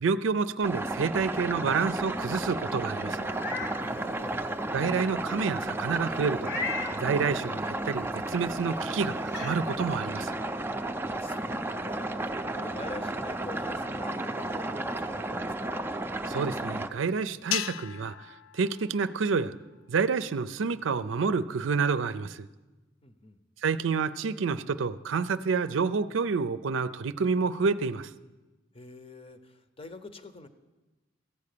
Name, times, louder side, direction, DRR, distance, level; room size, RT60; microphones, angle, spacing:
voice 1, 0.0-3.3 4.7-6.5 7.0-10.4 16.3-19.5 19.9-22.5 23.6-28.1, right 5 dB, 90° right, 13 dB, 0.5 m, -28 dB
sound 1, 0.6-16.9, right 2 dB, 10° right, 0.4 m, -33 dB
Meow, 3.2-3.8 4.3-4.4 6.4-7.0 8.6-8.7 9.3-9.6, left 3 dB, 65° left, 1.2 m, -34 dB
voice 2, 3.8-4.5 11.0-15.8 23.0-23.4 28.7-30.5, left 2 dB, 30° left, 10 dB, 0.8 m, -46 dB
sound 2, 17.5-19.9, left 11 dB, 85° left, 0.4 m, -37 dB
14.5 x 8.4 x 6.7 m, 1.2 s
head